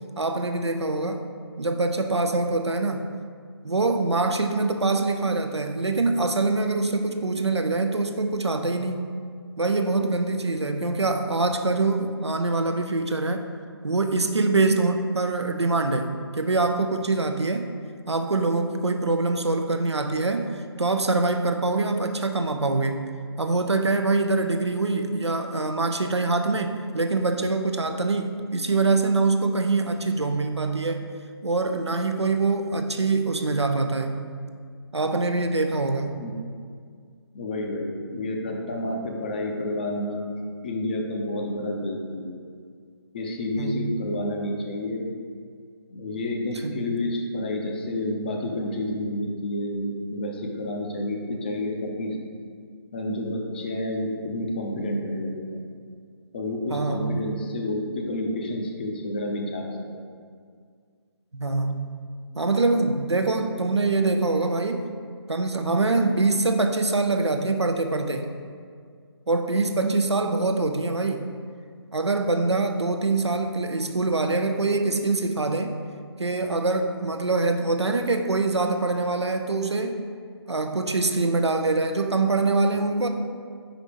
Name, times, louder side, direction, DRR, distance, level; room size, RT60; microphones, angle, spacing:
voice 1, 0.2-1.3 1.6-3.1 3.6-9.1 9.6-13.5 13.8-17.7 18.1-23.1 23.4-31.0 31.4-34.2 34.9-36.1 43.6-44.0 46.6-46.8 56.7-57.3 61.3-61.9 62.3-64.9 65.3-68.3 69.3-71.3 71.9-75.8 76.2-80.0 80.5-83.1, right 3 dB, 90° right, 6 dB, 0.6 m, -24 dB
voice 2, 37.3-40.4 40.6-42.4 43.1-45.1 45.9-52.2 52.9-55.6 56.3-59.6 59.9-60.0, left 1 dB, 20° left, 1 dB, 0.5 m, -29 dB
5.1 x 4.2 x 4.9 m, 2.1 s
figure-of-eight pair, 150°, 14 cm